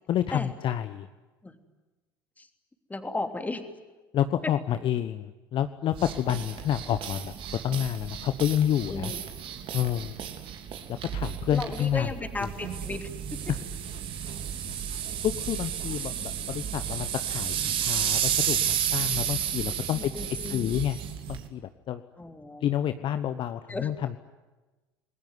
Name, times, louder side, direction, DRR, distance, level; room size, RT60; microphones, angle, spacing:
voice 1, 0.1-1.1 4.1-9.1 9.7-10.1 10.9-12.1 12.4-12.5 13.5-13.6 14.7-14.8 15.2-21.0 21.3-21.6 21.9-22.0 22.6-24.2, left 11 dB, 40° left, 10 dB, 1.1 m, -29 dB
voice 2, 2.9-3.6 8.9-9.2 11.5-13.4 19.9-20.7 22.2-22.7 23.7-23.9, left 2 dB, 15° left, 7 dB, 3.2 m, -35 dB
sound 1, 5.9-21.5, right 9 dB, 45° right, 3.2 m, -32 dB
28.5 x 21.0 x 9.7 m, 1.2 s
figure-of-eight pair, 70°, 12 cm